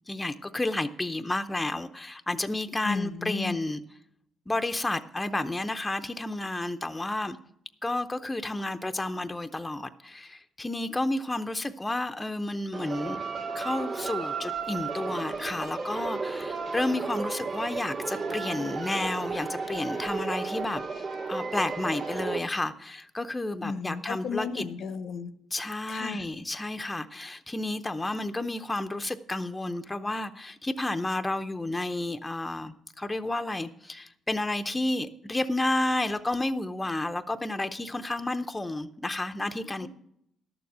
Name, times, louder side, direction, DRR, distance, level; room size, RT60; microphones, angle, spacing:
voice 1, 0.1-3.8 4.5-7.4 7.8-13.2 13.5-20.8 21.3-24.7 25.5-39.9, left 2 dB, 15° left, 0.6 m, -31 dB
voice 2, 2.8-3.6 23.6-25.3 25.9-26.2 39.8-39.9, left 5 dB, 65° left, 0.8 m, -34 dB
sound 1, 12.7-22.4, right 4 dB, 60° right, 2.3 m, -33 dB
12.0 x 7.0 x 6.1 m
cardioid pair, 90°, 0 cm